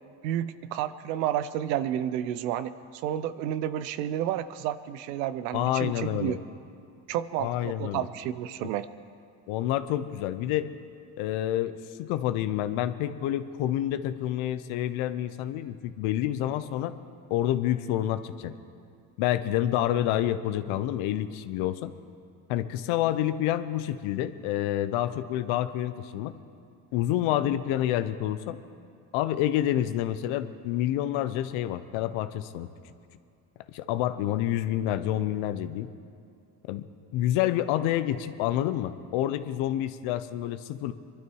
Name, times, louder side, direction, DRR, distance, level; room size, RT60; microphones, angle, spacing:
voice 1, 0.2-6.4 7.1-8.9, right 11 dB, 90° right, 14 dB, 0.7 m, -31 dB
voice 2, 5.5-6.4 7.4-8.1 8.6-8.7 9.5-10.7 11.2-11.7 12.0-16.9 17.3-18.5 19.2-21.9 22.5-26.3 26.9-28.6 29.1-32.7 33.7-35.9 36.7-36.9 37.1-40.9, left 12 dB, 75° left, 12 dB, 0.9 m, -28 dB
24.0 x 12.0 x 4.7 m, 2.4 s
hypercardioid pair, 65°, 48 cm